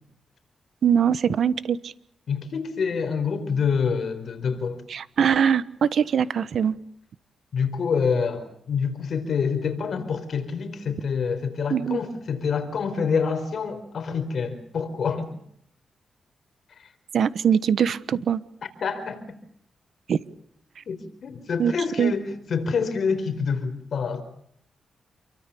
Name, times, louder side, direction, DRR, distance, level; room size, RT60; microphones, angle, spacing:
voice 1, 0.8-1.9 4.9-6.7 11.7-12.0 17.1-18.4 20.1-20.2 21.6-21.7 22.0-22.1, right 7 dB, 70° right, 1.2 m, -22 dB
voice 2, 2.3-4.8 7.5-15.3 16.8-16.9 18.8-19.2 20.9-24.2, left 5 dB, 65° left, 4.5 m, -27 dB
28.5 x 23.5 x 7.0 m
cardioid pair, 90°, 0 cm